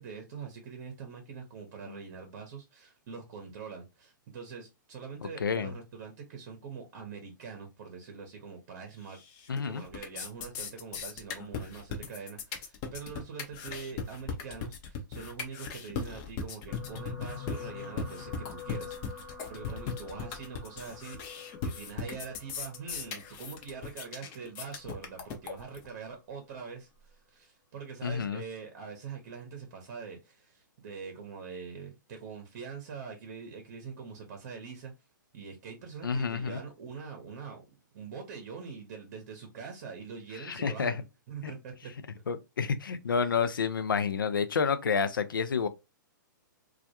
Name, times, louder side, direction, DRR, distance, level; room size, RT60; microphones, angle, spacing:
voice 1, 0.0-9.2 9.6-21.4 21.6-34.9 35.3-37.6 37.9-41.9, right 5 dB, 50° right, 0.7 m, -44 dB
voice 2, 5.4-5.7 9.5-9.8 28.0-28.4 36.0-36.6 40.3-41.0 42.3-45.7, left 6 dB, 85° left, 0.4 m, -29 dB
sound 1, 9.1-9.6 9.9-25.9, left 5 dB, 35° left, 0.6 m, -38 dB
sound 2, 16.7-25.1 25.9-26.1 26.4-26.5, left 7 dB, 70° left, 1.2 m, -46 dB
2.3 x 2.2 x 2.7 m
hypercardioid pair, 120°, 11 cm